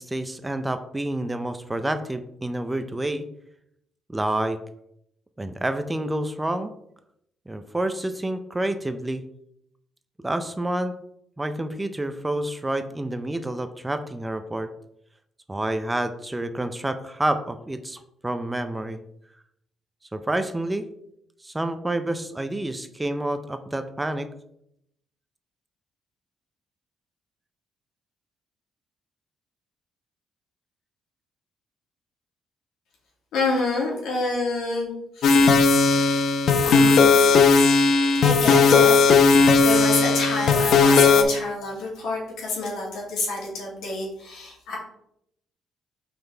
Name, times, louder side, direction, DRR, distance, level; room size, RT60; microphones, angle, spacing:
voice 1, 0.0-3.3 4.1-4.6 5.4-6.7 7.5-9.2 10.2-11.0 11.4-14.7 15.5-19.0 20.1-20.8 21.4-24.3, right 1 dB, 15° right, 10 dB, 0.5 m, -28 dB
voice 2, 33.3-35.4 36.6-37.3 38.2-44.8, left 3 dB, 85° left, -3 dB, 2.3 m, -28 dB
sound 1, 35.2-41.2, left 4 dB, 70° left, 0.6 m, -17 dB
5.3 x 3.9 x 4.5 m, 0.76 s
cardioid pair, 90°, 0 cm